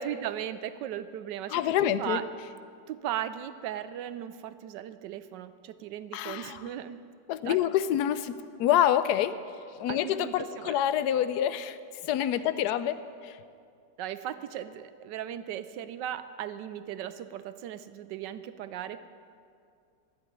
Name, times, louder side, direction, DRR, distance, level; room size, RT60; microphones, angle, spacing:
voice 1, 0.0-1.6 2.0-2.3 2.9-7.0 7.4-7.6 9.9-10.8 12.3-12.4 14.0-19.1, right 11 dB, 80° right, 13 dB, 1.2 m, -37 dB
voice 2, 1.5-2.2 6.1-6.7 7.3-9.4 9.8-11.8 12.0-13.0 13.2-13.4, left 11 dB, 70° left, 13 dB, 1.1 m, -27 dB
12.5 x 8.0 x 9.9 m, 2.3 s
omnidirectional pair, 1.9 m